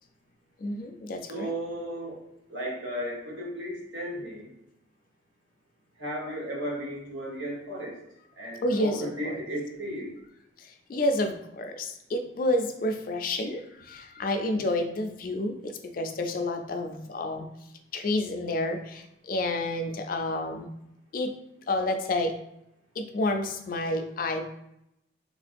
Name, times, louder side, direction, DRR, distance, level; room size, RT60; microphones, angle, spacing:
voice 1, 0.6-1.5 8.6-9.4 10.6-17.5 17.9-20.7 21.1-21.3 21.7-22.3 23.0-24.4, left 1 dB, 45° left, 5 dB, 0.3 m, -29 dB
voice 2, 1.3-2.2 2.5-4.4 6.0-8.0 8.4-10.1 14.5-14.7, equal, 80° right, -3 dB, 1.1 m, -35 dB
3.6 x 2.5 x 2.4 m, 0.81 s
head